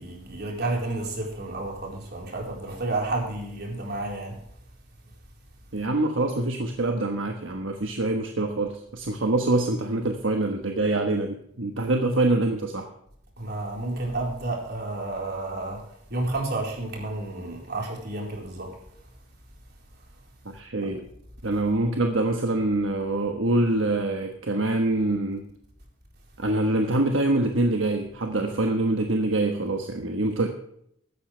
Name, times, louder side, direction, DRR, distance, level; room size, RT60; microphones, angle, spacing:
voice 1, 0.0-4.4 13.4-15.8 16.1-18.8 20.8-20.9, right 2 dB, 55° right, 0 dB, 4.2 m, -31 dB
voice 2, 5.7-12.9 20.5-21.1 21.4-25.4 26.4-30.5, right 2 dB, 75° right, 4 dB, 1.3 m, -25 dB
15.0 x 13.0 x 3.3 m, 0.71 s
head